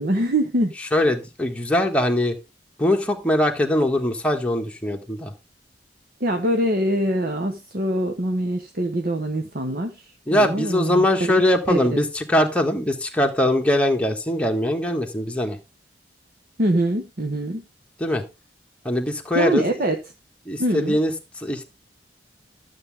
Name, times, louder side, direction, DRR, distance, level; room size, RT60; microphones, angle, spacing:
voice 1, 0.0-0.7 6.2-10.0 10.3-11.3 11.7-12.0 16.6-17.6 19.3-20.0 20.6-21.0, right 1 dB, 55° right, 1.1 m, -23 dB
voice 2, 0.9-2.3 2.8-5.3 10.3-15.6 18.0-18.2 18.8-19.7 20.4-21.6, left 1 dB, 5° left, 1.5 m, -22 dB
12.5 x 7.4 x 3.6 m
head